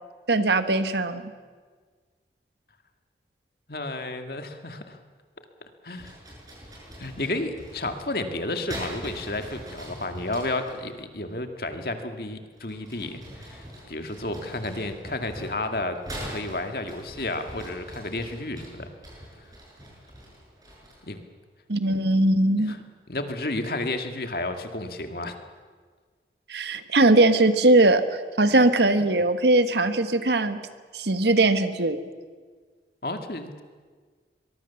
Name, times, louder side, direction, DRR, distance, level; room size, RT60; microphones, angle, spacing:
voice 1, 0.3-1.2 21.7-22.7 26.5-30.6 30.9-32.0, right 2 dB, 75° right, 10 dB, 1.4 m, -20 dB
voice 2, 3.7-5.0 5.8-6.2 7.0-16.0 16.3-18.9 21.0-21.2 21.9-22.0 22.6-22.8 23.1-25.4 28.5-28.6 33.0-33.6, left 2 dB, 55° left, 6 dB, 2.1 m, -32 dB
sound 1, 5.9-10.8 12.5-21.1, equal, 20° right, 6.9 m, -42 dB
24.0 x 21.5 x 7.1 m, 1.5 s
head